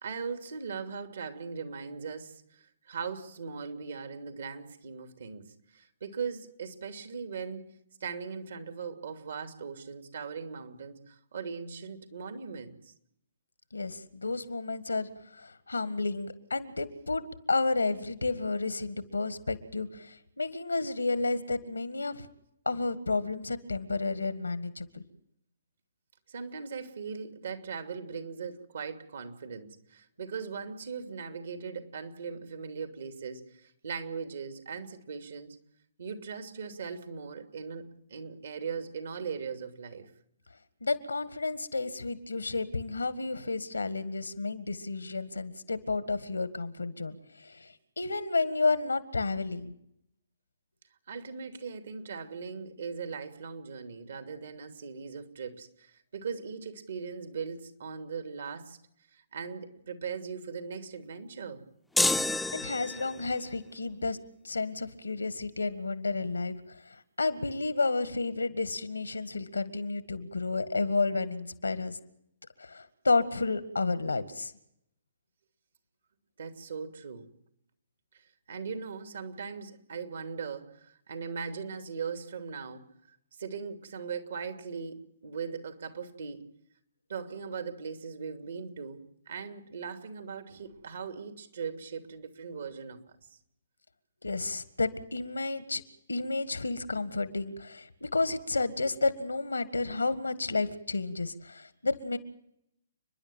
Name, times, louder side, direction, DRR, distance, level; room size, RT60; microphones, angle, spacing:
voice 1, 0.0-12.9 26.3-35.6 36.0-40.1 51.1-58.8 59.1-61.6 76.4-77.3 78.1-86.5 87.1-93.4, right 5 dB, 65° right, 2.8 m, -39 dB
voice 2, 13.7-15.1 15.4-22.3 22.7-25.0 40.8-49.8 62.5-64.2 64.4-72.0 72.6-74.5 94.2-95.8 96.1-102.2, left 3 dB, 85° left, 1.8 m, -31 dB
sound 1, 62.0-63.3, left 2 dB, 5° left, 0.7 m, -28 dB
30.0 x 11.0 x 9.0 m
figure-of-eight pair, 125°, 0 cm